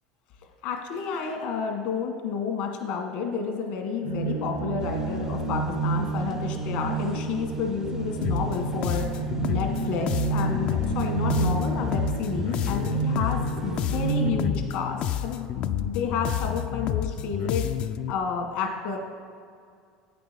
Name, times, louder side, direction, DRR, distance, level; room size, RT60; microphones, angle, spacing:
voice 1, 0.6-9.1 9.5-15.5 15.8-17.6 18.1-19.0, left 6 dB, 70° left, 3 dB, 1.6 m, -30 dB
sound 1, 4.0-14.3, right 4 dB, 80° right, 1.0 m, -29 dB
sound 2, 4.8-14.1, right 4 dB, 25° right, 0.4 m, -45 dB
sound 3, 8.2-18.1, left 10 dB, 50° left, 0.4 m, -30 dB
9.0 x 6.0 x 5.1 m, 2.2 s
supercardioid pair, 105°, 2 cm